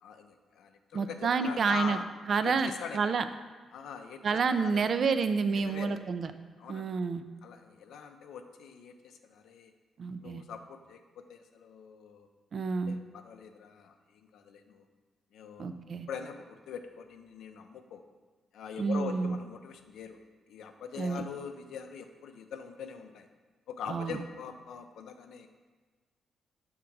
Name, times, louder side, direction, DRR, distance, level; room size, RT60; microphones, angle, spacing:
voice 1, 0.0-2.0 2.4-3.1 3.7-4.9 5.5-6.0 6.6-6.9 7.4-9.7 10.2-12.3 12.9-14.8 15.3-15.7 16.1-18.0 18.5-20.2 20.5-23.3 23.7-25.6, left 6 dB, 85° left, 6 dB, 0.4 m, -43 dB
voice 2, 0.9-2.0 2.3-3.2 4.2-6.3 6.7-7.2 10.0-10.4 12.5-13.0 15.6-16.1 18.8-19.4 21.0-21.2 23.9-24.2, right 5 dB, 55° right, 10 dB, 0.3 m, -29 dB
6.1 x 3.6 x 4.5 m, 1.3 s
cardioid pair, 85°, 0 cm